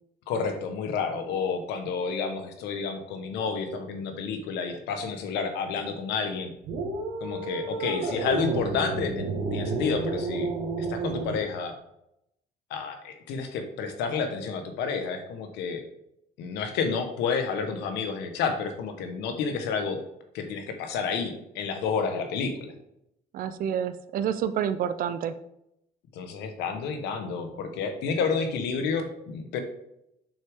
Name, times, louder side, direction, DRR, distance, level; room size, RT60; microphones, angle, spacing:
voice 1, 0.3-6.5 7.2-9.3 9.5-10.5 10.8-11.7 12.7-15.8 16.4-20.0 20.3-22.7 26.1-29.6, left 5 dB, 85° left, 6 dB, 1.3 m, -30 dB
sound 1, 6.6-11.4, right 3 dB, 80° right, 1.6 m, -31 dB
voice 2, 23.3-25.3, right 8 dB, 55° right, 12 dB, 0.5 m, -28 dB
7.1 x 6.0 x 3.7 m, 0.81 s
cardioid pair, 110°, 17 cm